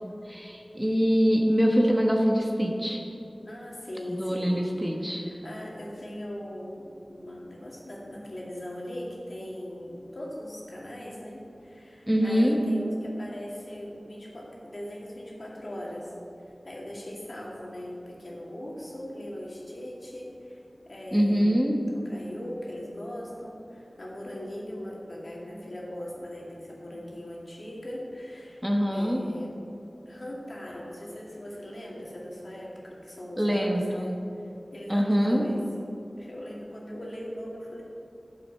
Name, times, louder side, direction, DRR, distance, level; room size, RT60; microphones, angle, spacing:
voice 1, 0.3-3.0 4.1-5.2 12.1-12.6 21.1-21.8 28.6-29.2 33.4-34.2 34.9-35.4, equal, 5° right, 1 dB, 1.1 m, -24 dB
voice 2, 3.4-4.7 5.2-16.1 16.6-29.6 30.1-35.9 36.2-37.8, left 1 dB, 60° left, -4 dB, 2.3 m, -40 dB
11.5 x 7.4 x 5.6 m, 2.8 s
wide cardioid pair, 60°, 0 cm